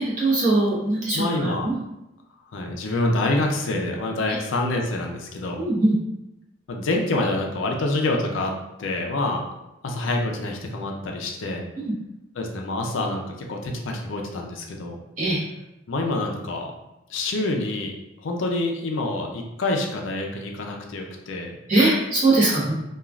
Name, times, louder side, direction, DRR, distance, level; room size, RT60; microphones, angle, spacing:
voice 1, 0.0-1.8 5.6-6.0 11.8-11.9 15.2-15.4 21.7-22.7, right 2 dB, 40° right, -7 dB, 1.0 m, -21 dB
voice 2, 1.1-1.7 2.5-5.6 6.7-8.5 8.8-9.4 9.8-11.6 12.4-15.0 15.9-16.7 17.1-17.9 18.2-21.5, left 2 dB, 80° left, 1 dB, 0.5 m, -26 dB
3.0 x 2.3 x 2.4 m, 0.92 s
head